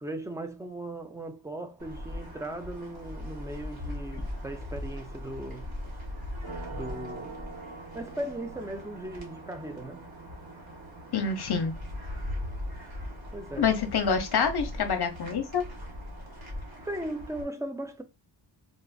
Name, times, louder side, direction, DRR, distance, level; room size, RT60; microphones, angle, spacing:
voice 1, 0.0-5.7 6.7-7.4 7.9-10.1 13.3-13.7 16.8-18.0, right 1 dB, 5° right, 0.4 m, -38 dB
sound 1, 1.8-17.4, equal, 50° right, 1.3 m, -40 dB
voice 2, 11.1-11.7 13.6-15.7, left 6 dB, 55° left, 0.8 m, -27 dB
4.0 x 2.4 x 2.3 m
wide cardioid pair, 140°, 48 cm